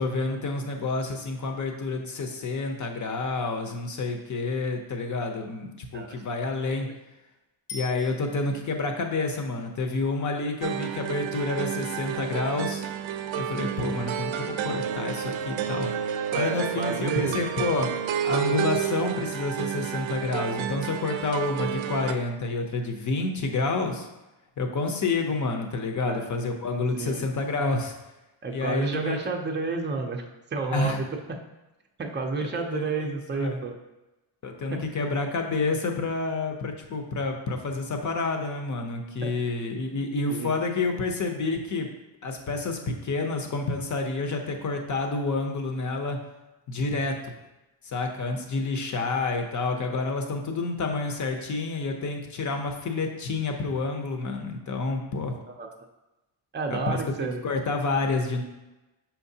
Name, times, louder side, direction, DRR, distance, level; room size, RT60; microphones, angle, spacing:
voice 1, 0.0-6.9 7.7-12.8 13.4-15.9 16.3-17.9 18.2-24.1 24.6-27.9 28.5-29.2 30.7-31.0 32.7-33.6 34.4-41.9 42.2-46.2 46.7-47.3 47.8-55.3 56.7-58.4, left 3 dB, 40° left, 4 dB, 0.7 m, -29 dB
Bicycle bell, 7.7-8.8 17.9-18.0, left 4 dB, 75° left, 1.2 m, -43 dB
sound 1, 10.6-22.1, right 9 dB, 75° right, 0.6 m, -30 dB
voice 2, 16.3-17.5 26.0-26.2 26.9-27.2 28.4-30.2 30.5-31.4 32.0-33.8 34.7-34.8 39.2-39.3 39.9-40.0 40.3-40.5 55.6-55.7 56.5-57.4, right 4 dB, 25° right, 2 dB, 0.5 m, -30 dB
6.0 x 5.8 x 2.7 m, 1.0 s
wide cardioid pair, 170°, 47 cm